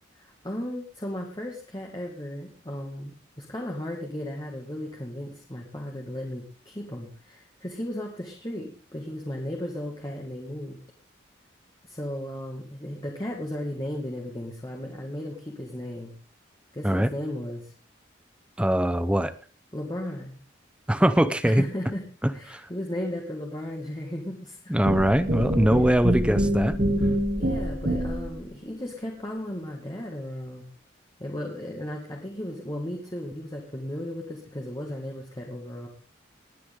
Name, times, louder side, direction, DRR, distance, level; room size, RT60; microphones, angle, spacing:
voice 1, 0.2-10.8 11.8-16.1 16.7-17.7 19.7-20.4 21.4-22.0 22.3-24.8 27.4-30.6 31.2-35.9, left 1 dB, 20° left, -1 dB, 2.1 m, -35 dB
voice 2, 18.6-19.3 20.9-21.6 22.2-22.7 24.7-26.8, equal, 5° right, 12 dB, 0.6 m, -22 dB
sound 1, 24.9-28.4, equal, 50° right, 2.5 m, -26 dB
20.0 x 9.4 x 3.7 m, 0.37 s
head